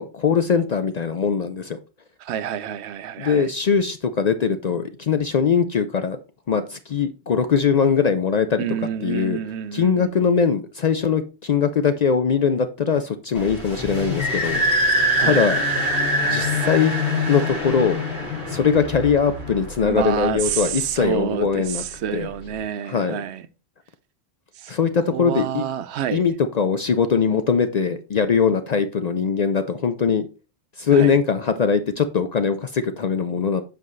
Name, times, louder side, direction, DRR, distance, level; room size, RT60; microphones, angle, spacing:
voice 1, 0.0-1.8 3.2-6.2 6.5-8.6 9.0-9.4 9.7-14.6 15.2-15.6 16.2-16.9 17.3-18.0 18.5-21.8 22.1-22.3 22.8-23.2 24.7-25.6 26.1-30.3 30.8-33.6, left 6 dB, 55° left, 0.5 m, -21 dB
voice 2, 2.2-3.5 8.6-10.1 15.2-15.4 19.8-23.4 24.6-24.7 25.1-26.2 30.9-31.1, right 9 dB, 80° right, 0.9 m, -28 dB
sound 1, 13.3-20.7, equal, 70° left, 3.0 m, -24 dB
7.6 x 5.3 x 3.1 m
omnidirectional pair, 1.1 m